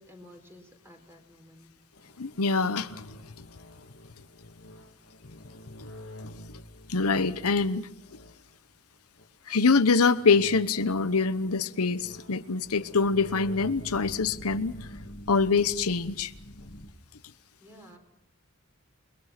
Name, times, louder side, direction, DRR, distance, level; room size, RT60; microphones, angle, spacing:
voice 1, 0.0-1.7 17.6-18.0, equal, 10° right, 4.3 m, -52 dB
sound 1, 1.9-8.6 9.2-9.3 9.6-16.9, left 1 dB, 55° left, 2.1 m, -46 dB
voice 2, 2.2-3.0 6.9-7.9 9.5-14.8 15.3-16.3, left 4 dB, 80° left, 1.0 m, -24 dB
29.0 x 21.5 x 5.9 m
head